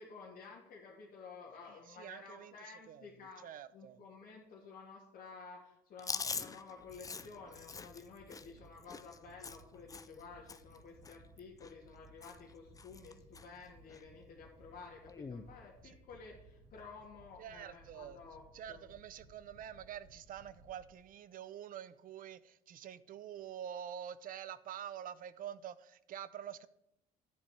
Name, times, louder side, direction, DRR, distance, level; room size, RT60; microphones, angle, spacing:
voice 1, 0.0-3.4 3.7-18.4 18.7-18.8, left 4 dB, 55° left, -3 dB, 1.9 m, -52 dB
voice 2, 1.7-4.0 15.8-16.0 17.4-18.2 18.5-26.7, right 9 dB, 55° right, 17 dB, 0.6 m, -47 dB
Chewing mastication, 6.0-10.2 10.5-10.8 11.0-12.0 12.2-12.5 12.8-13.5 13.9-14.0 15.1-15.5, left 5 dB, 20° left, 0.5 m, -44 dB
sound 1, 6.8-20.9, right 1 dB, 80° right, 3.5 m, -62 dB
10.5 x 4.3 x 7.7 m, 0.83 s
cardioid pair, 110°, 17 cm